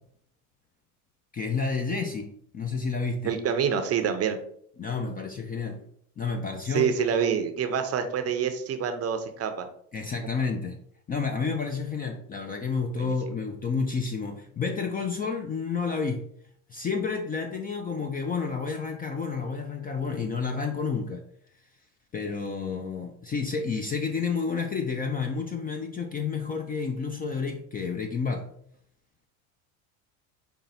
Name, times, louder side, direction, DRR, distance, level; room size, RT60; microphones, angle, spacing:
voice 1, 1.3-2.3 2.5-3.3 4.8-5.8 6.2-6.9 9.9-10.8 11.1-16.2 16.7-21.2 22.1-28.5, left 5 dB, 20° left, 4 dB, 0.4 m, -30 dB
voice 2, 3.2-4.4 6.7-9.7 13.0-13.1, right 7 dB, 35° right, 7 dB, 0.6 m, -27 dB
5.3 x 2.3 x 4.1 m, 0.65 s
hypercardioid pair, 90°, 45 cm